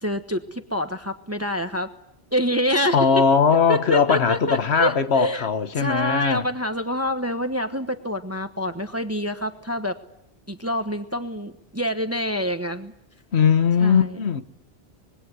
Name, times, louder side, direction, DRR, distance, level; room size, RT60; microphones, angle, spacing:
voice 1, 0.0-1.9 2.3-3.1 3.7-5.5 5.8-10.0 10.5-12.9 13.8-14.2, equal, 15° right, 1.1 m, -26 dB
voice 2, 2.9-6.5 13.3-14.4, left 6 dB, 80° left, 1.5 m, -19 dB
25.5 x 21.5 x 8.1 m
omnidirectional pair, 1.1 m